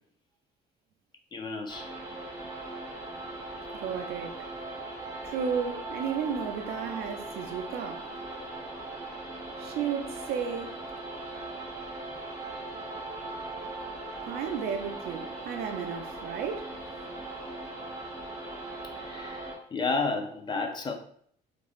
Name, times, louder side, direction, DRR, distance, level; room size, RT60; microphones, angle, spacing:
voice 1, 1.3-1.9 19.0-20.9, left 3 dB, 25° left, 0.5 m, -32 dB
sound 1, 1.7-19.6, right 2 dB, 15° right, 0.7 m, -39 dB
voice 2, 3.7-4.5 5.2-8.1 9.6-10.7 14.2-16.7, right 7 dB, 70° right, 0.5 m, -33 dB
3.1 x 2.5 x 2.4 m
cardioid pair, 110°, 17 cm